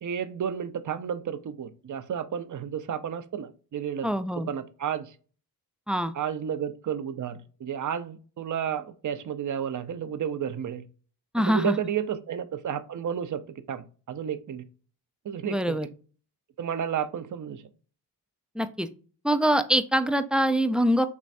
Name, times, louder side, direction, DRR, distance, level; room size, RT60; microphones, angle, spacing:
voice 1, 0.0-4.1 4.5-5.1 6.1-10.8 11.5-13.4 13.7-14.6 15.2-15.8 16.6-17.6, right 8 dB, 50° right, 0.6 m, -32 dB
voice 2, 4.0-4.5 5.9-6.1 11.3-11.8 15.5-15.9 18.6-18.9 19.2-21.0, equal, ahead, 0.3 m, -24 dB
4.6 x 3.1 x 2.6 m
cardioid pair, 75°, 41 cm